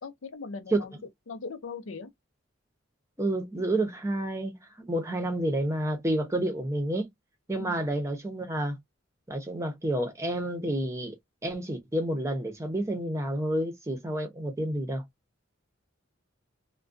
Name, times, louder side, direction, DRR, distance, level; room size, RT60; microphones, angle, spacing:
voice 1, 0.0-0.9 1.3-2.1 7.6-7.8, left 4 dB, 85° left, 0.6 m, -39 dB
voice 2, 3.2-4.6 4.9-7.1 7.5-8.8 9.3-11.1 11.4-15.0, right 1 dB, 15° right, 0.6 m, -29 dB
2.3 x 2.2 x 2.5 m
head